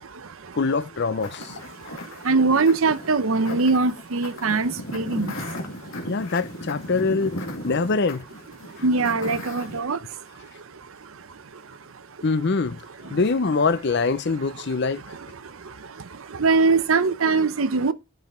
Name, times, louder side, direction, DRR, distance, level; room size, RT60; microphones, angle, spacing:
voice 1, 0.6-1.5 6.1-7.4 7.6-8.2 12.2-15.0, left 4 dB, 50° left, 0.6 m, -24 dB
sound 1, 1.2-9.8, left 1 dB, 70° left, 2.1 m, -36 dB
voice 2, 2.2-5.3 8.8-10.0 16.4-17.9, right 4 dB, 65° right, 0.7 m, -21 dB
11.5 x 5.6 x 4.3 m
head